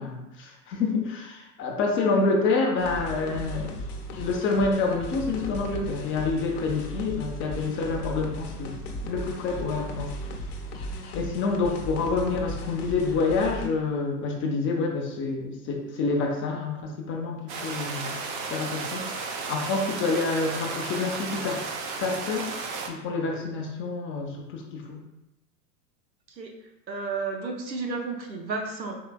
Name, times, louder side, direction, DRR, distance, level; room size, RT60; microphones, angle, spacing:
voice 1, 0.0-3.7 4.1-10.1 11.1-18.2 18.5-19.1 19.5-21.6 22.0-22.5 22.9-25.0, left 3 dB, 25° left, 1 dB, 0.6 m, -27 dB
sound 1, 2.8-13.7, equal, 65° left, 0.8 m, -36 dB
sound 2, 17.5-22.9, right 4 dB, 40° right, 0.6 m, -34 dB
voice 2, 26.9-29.0, right 4 dB, 90° right, 2 dB, 0.8 m, -32 dB
4.7 x 3.2 x 2.2 m, 0.90 s
hypercardioid pair, 95°, 49 cm